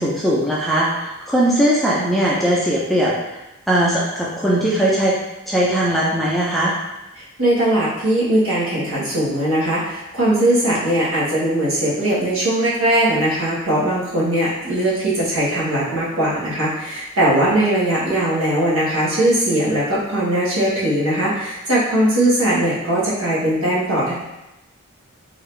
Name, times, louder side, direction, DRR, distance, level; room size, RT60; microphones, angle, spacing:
voice 1, 0.0-3.1 3.7-5.2 5.5-6.7, right 1 dB, ahead, -6 dB, 0.5 m, -19 dB
voice 2, 7.1-24.1, right 1 dB, 70° right, -8 dB, 1.4 m, -19 dB
3.9 x 2.7 x 3.3 m, 0.95 s
head